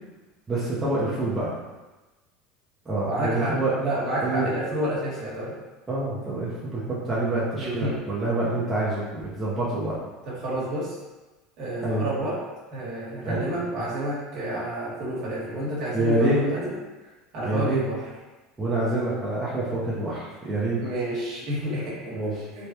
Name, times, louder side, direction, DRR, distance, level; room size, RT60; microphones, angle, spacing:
voice 1, 0.5-1.5 2.9-3.7 4.2-4.5 5.9-10.0 11.8-12.1 13.2-13.4 15.9-16.4 17.5-17.8 18.6-20.8 22.1-22.3, right 2 dB, 15° right, -9 dB, 0.7 m, -26 dB
voice 2, 3.1-5.6 7.6-8.0 10.2-11.0 11.6-12.4 12.7-18.1 20.8-22.2 22.5-22.7, right 1 dB, 55° right, -7 dB, 1.3 m, -30 dB
3.3 x 2.2 x 2.8 m, 1.2 s
supercardioid pair, 125°, 0 cm